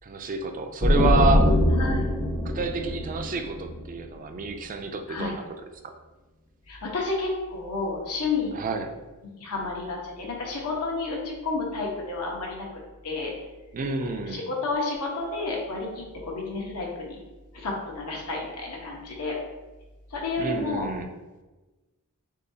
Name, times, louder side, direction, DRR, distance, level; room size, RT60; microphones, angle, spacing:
voice 1, 0.0-1.5 2.5-5.4 8.5-8.9 13.7-14.4 20.4-21.1, right 3 dB, 35° right, 6 dB, 0.4 m, -29 dB
sound 1, 0.8-4.4, left 1 dB, 20° left, 0.5 m, -23 dB
voice 2, 1.7-2.1 5.1-5.4 6.7-8.6 9.2-12.7 13.0-13.3 14.0-17.2 17.5-19.4 20.1-20.9, left 3 dB, 85° left, -2 dB, 1.1 m, -31 dB
6.6 x 2.4 x 2.7 m, 1.2 s
head